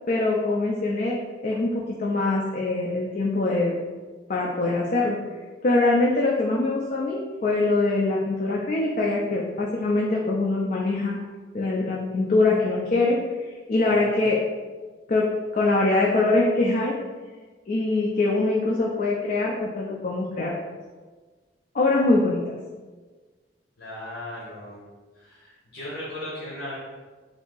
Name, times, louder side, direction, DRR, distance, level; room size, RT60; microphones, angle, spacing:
voice 1, 0.1-3.8 4.3-5.2 5.6-11.2 11.5-13.2 13.7-14.4 15.1-16.9 17.7-20.6 21.7-22.6, left 2 dB, 45° left, -2 dB, 0.4 m, -23 dB
voice 2, 23.8-24.9 25.1-26.7, left 1 dB, 85° left, -8 dB, 1.2 m, -37 dB
3.5 x 2.7 x 3.8 m, 1.4 s
head